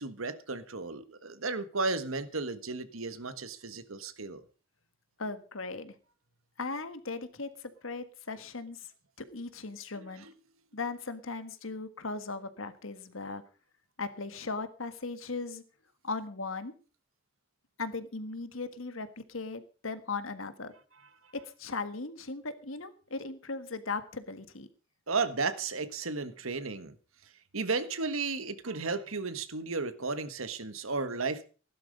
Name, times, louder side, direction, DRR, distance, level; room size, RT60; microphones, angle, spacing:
voice 1, 0.0-4.4 10.0-10.3 25.1-26.9 27.5-31.5, right 4 dB, 90° right, 1.6 m, -34 dB
voice 2, 5.2-5.9 6.6-7.5 7.8-8.9 9.2-10.2 10.7-13.4 14.0-15.6 16.0-16.7 17.8-20.7 21.3-24.7, left 3 dB, 80° left, 1.7 m, -38 dB
16.0 x 12.0 x 5.3 m
head